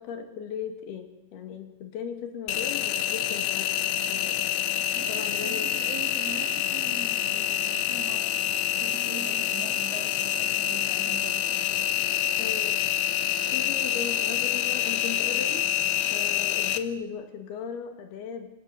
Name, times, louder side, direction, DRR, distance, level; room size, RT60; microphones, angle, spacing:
voice 1, 0.0-4.4 5.1-5.7 11.0-11.1 12.4-12.8 13.4-15.7 16.0-18.5, left 7 dB, 60° left, 6 dB, 3.7 m, -37 dB
Engine, 2.5-16.8, left 11 dB, 75° left, 2.3 m, -27 dB
voice 2, 4.9-8.4 8.8-12.0, right 5 dB, 60° right, 3 dB, 1.7 m, -42 dB
27.5 x 17.0 x 6.7 m, 0.91 s
omnidirectional pair, 5.7 m